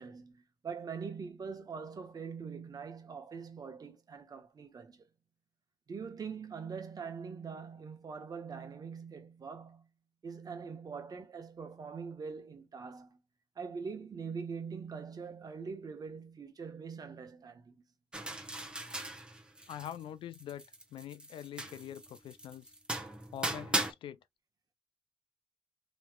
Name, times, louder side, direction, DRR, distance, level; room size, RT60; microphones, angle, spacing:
voice 1, 0.0-5.0 5.9-9.9 10.2-13.2 13.6-17.8, right 5 dB, 50° right, 1.1 m, -43 dB
sound 1, 18.1-20.0 20.3-23.9, right 1 dB, 10° right, 1.0 m, -38 dB
voice 2, 19.7-20.6 20.9-22.7 23.3-24.2, left 10 dB, 90° left, 0.4 m, -44 dB
3.1 x 3.1 x 2.2 m
cardioid pair, 90°, 9 cm